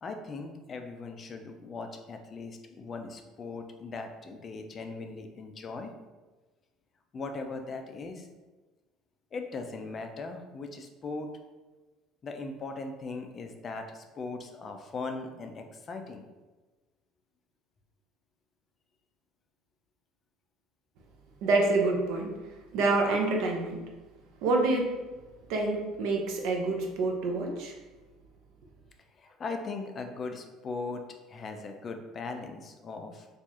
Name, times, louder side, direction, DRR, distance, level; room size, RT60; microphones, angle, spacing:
voice 1, 0.0-5.9 7.1-8.3 9.3-11.3 12.2-16.3 29.1-31.0 31.3-33.3, left 3 dB, 25° left, 5 dB, 0.3 m, -39 dB
voice 2, 21.4-22.3 22.7-23.8 24.4-24.9 25.5-27.7, right 3 dB, 65° right, 1 dB, 0.6 m, -27 dB
4.5 x 2.4 x 2.8 m, 1.2 s
cardioid pair, 165°, 0 cm